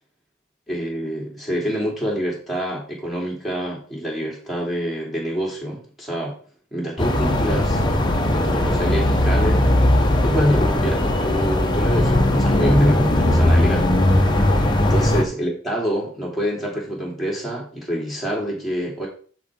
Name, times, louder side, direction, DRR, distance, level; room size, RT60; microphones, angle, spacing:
voice 1, 0.7-6.4 6.7-7.8 8.3-9.7 10.2-13.9 14.8-19.1, equal, ahead, -4 dB, 2.8 m, -26 dB
sound 1, 7.0-15.2, left 1 dB, 20° left, 1.0 m, -18 dB
12.5 x 4.8 x 3.7 m, 0.44 s
head